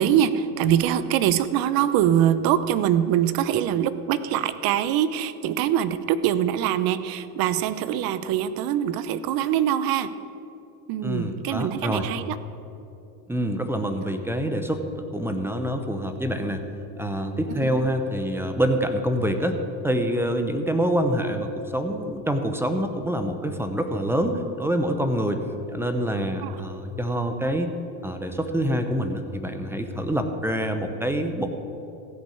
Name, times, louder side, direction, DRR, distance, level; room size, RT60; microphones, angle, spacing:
voice 1, 0.0-10.1 10.9-12.4 17.5-17.7 26.4-26.6, right 10 dB, 50° right, 14 dB, 0.7 m, -23 dB
voice 2, 11.0-12.1 13.3-16.6 17.0-19.6 19.8-25.4 25.7-27.7 28.0-31.5, equal, 5° right, 6 dB, 0.7 m, -26 dB
15.0 x 5.4 x 8.7 m, 2.7 s
supercardioid pair, 120°, 47 cm